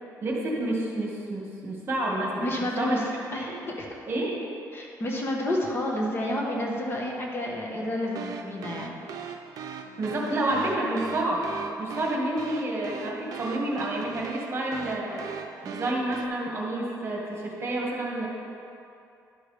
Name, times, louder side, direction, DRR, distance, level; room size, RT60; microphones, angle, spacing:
voice 1, 0.2-2.4 2.8-3.0 3.3-3.5 4.1-4.4 10.0-11.4 11.8-15.2 15.6-18.3, right 1 dB, 35° right, -2 dB, 1.7 m, -29 dB
voice 2, 2.4-3.0 3.3-3.9 4.7-9.0, left 1 dB, 35° left, -1 dB, 1.2 m, -30 dB
sound 1, 8.1-16.3, right 6 dB, 65° right, 0.6 m, -40 dB
11.0 x 6.6 x 3.4 m, 2.6 s
cardioid pair, 120°, 7 cm